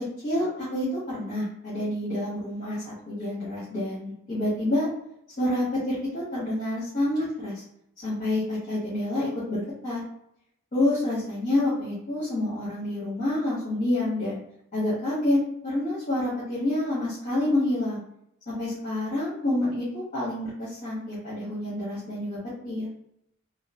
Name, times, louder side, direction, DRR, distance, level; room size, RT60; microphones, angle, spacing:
voice 1, 0.2-4.9 5.4-7.6 8.0-10.0 10.7-14.4 14.7-18.0 18.5-22.4 22.6-22.9, left 1 dB, 40° left, -9 dB, 1.0 m, -28 dB
2.9 x 2.4 x 2.6 m, 0.76 s
head